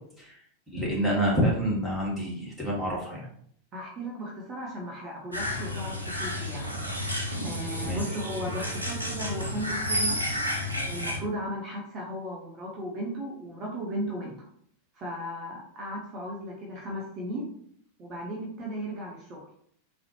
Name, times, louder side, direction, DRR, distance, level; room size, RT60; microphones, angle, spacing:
voice 1, 0.7-3.3 7.8-8.0, equal, ahead, -5 dB, 1.2 m, -27 dB
voice 2, 3.7-6.7 7.4-10.5 10.8-14.4 14.9-17.5 18.0-19.5, equal, 30° right, -2 dB, 0.7 m, -36 dB
sound 1, 5.3-11.2, equal, 90° right, 0.6 m, -31 dB
3.8 x 2.0 x 3.0 m, 0.64 s
figure-of-eight pair, 90°, 0 cm